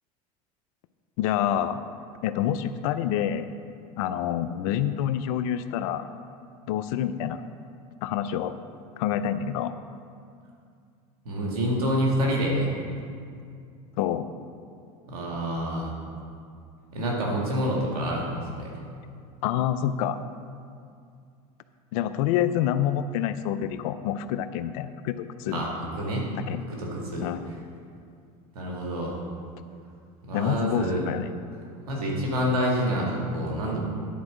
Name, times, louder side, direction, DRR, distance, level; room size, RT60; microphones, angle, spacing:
voice 1, 1.2-1.8 2.2-3.5 4.0-6.1 6.7-7.4 8.0-8.6 9.0-9.7 14.0-14.3 19.4-20.2 21.9-25.6 26.5-26.6 27.2-27.4 30.3-31.3, left 10 dB, 70° left, 12 dB, 0.5 m, -27 dB
voice 2, 11.3-12.7 15.1-15.9 16.9-18.7 25.5-26.3 26.7-27.2 28.6-29.2 30.2-31.0 31.9-33.8, equal, 90° right, -2 dB, 2.0 m, -27 dB
10.0 x 4.6 x 6.3 m, 2.3 s
hypercardioid pair, 95°, 19 cm